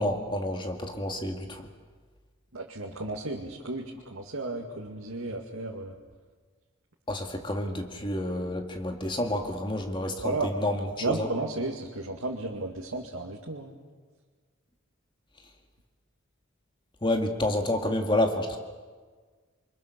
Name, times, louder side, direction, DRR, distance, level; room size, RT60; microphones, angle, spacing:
voice 1, 0.0-1.7 7.1-11.3 17.0-18.6, left 1 dB, 25° left, 3 dB, 2.0 m, -29 dB
voice 2, 2.5-6.0 10.2-10.5 11.0-13.7, right 2 dB, 90° right, -1 dB, 2.2 m, -33 dB
28.5 x 24.0 x 6.8 m, 1.5 s
head